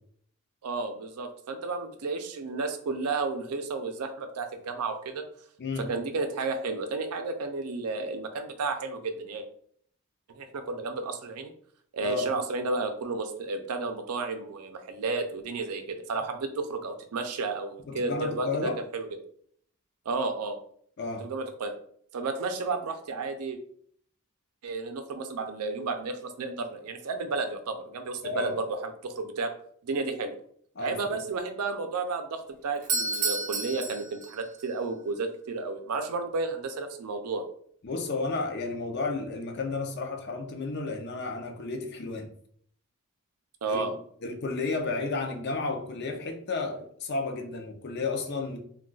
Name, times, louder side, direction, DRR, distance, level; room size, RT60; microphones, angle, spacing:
voice 1, 0.6-5.2 5.8-9.5 10.3-11.5 11.9-19.1 20.1-20.6 21.2-21.7 22.1-23.6 24.6-28.7 29.0-29.5 29.8-30.4 30.8-37.5 43.6-43.9, right 3 dB, 85° right, 0.5 m, -32 dB
voice 2, 5.6-5.9 12.0-12.3 17.9-18.8 21.0-21.3 28.2-28.6 30.8-31.2 37.8-42.3 43.7-48.6, left 3 dB, 50° left, 0.5 m, -32 dB
Doorbell, 32.7-34.7, right 3 dB, 35° right, 0.6 m, -31 dB
2.3 x 2.3 x 3.8 m
head